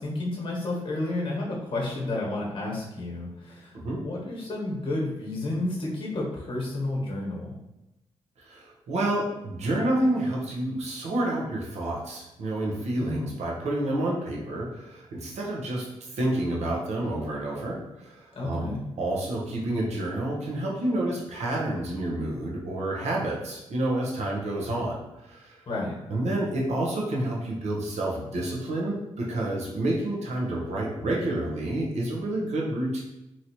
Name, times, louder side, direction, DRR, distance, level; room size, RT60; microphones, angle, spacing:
voice 1, 0.0-3.8 4.0-7.6 13.0-13.3 18.3-18.8 25.7-26.0, left 2 dB, 45° left, -2 dB, 1.1 m, -31 dB
voice 2, 8.4-15.9 16.1-17.8 18.0-18.7 19.0-25.6 26.1-33.0, right 1 dB, 70° right, -3 dB, 0.9 m, -29 dB
3.0 x 2.7 x 2.9 m, 0.93 s
supercardioid pair, 50°, 12 cm